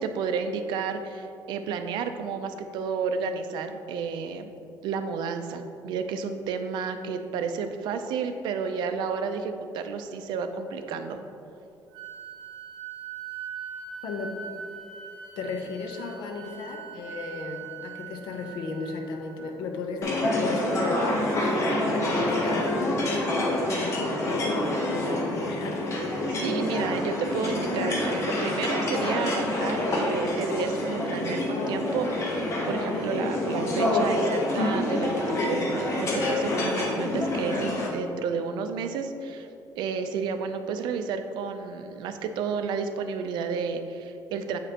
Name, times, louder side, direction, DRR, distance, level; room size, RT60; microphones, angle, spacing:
voice 1, 0.0-4.5 4.8-11.2 26.3-39.5 39.7-44.6, right 5 dB, 90° right, 7 dB, 0.4 m, -31 dB
Wind instrument woodwind instrument, 11.9-19.7, right 7 dB, 60° right, 1.3 m, -41 dB
voice 2, 14.0-14.3 15.4-21.5 21.8-23.9 24.3-26.0, left 4 dB, 80° left, 3 dB, 0.7 m, -35 dB
sound 1, 20.0-37.9, left 1 dB, 40° left, 0.8 m, -27 dB
7.4 x 5.1 x 2.9 m, 2.6 s
cardioid pair, 180°, 8 cm